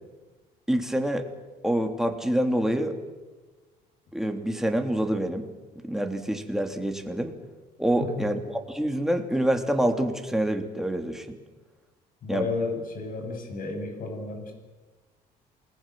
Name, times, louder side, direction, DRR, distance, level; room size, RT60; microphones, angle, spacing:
voice 1, 0.7-1.3 1.6-2.9 4.1-5.5 5.8-7.3 7.8-11.4 12.3-12.5, right 1 dB, ahead, 4 dB, 3.3 m, -26 dB
voice 2, 12.2-14.5, left 4 dB, 55° left, 5 dB, 7.9 m, -32 dB
28.0 x 20.5 x 7.8 m, 1.3 s
cardioid pair, 110°, 17 cm